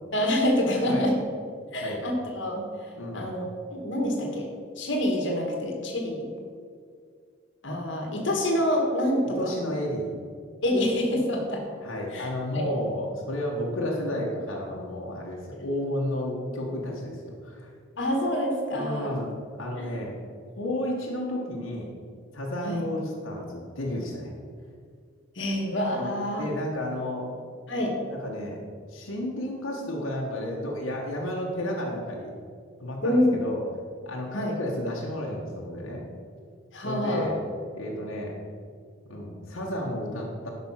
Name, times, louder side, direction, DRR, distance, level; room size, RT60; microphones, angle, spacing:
voice 1, 0.1-1.1 1.7-2.6 3.1-3.4 3.7-4.5 4.8-6.3 7.6-9.5 10.6-11.6 12.1-12.3 12.5-12.7 18.0-19.2 19.8-19.9 22.6-22.8 25.3-26.4 27.7-27.9 33.0-33.4 34.3-34.6 36.7-37.3, left 1 dB, 55° left, 1 dB, 1.7 m, -26 dB
voice 2, 9.4-10.1 11.8-17.7 18.7-19.3 19.6-20.2 20.6-21.9 22.3-24.3 26.0-26.1 26.4-27.3 28.1-28.6 28.9-32.3 32.8-33.6 34.0-36.0 36.8-37.4 37.7-38.3 39.1-40.5, left 1 dB, 75° left, -3 dB, 1.5 m, -32 dB
11.0 x 5.4 x 5.8 m, 2.1 s
head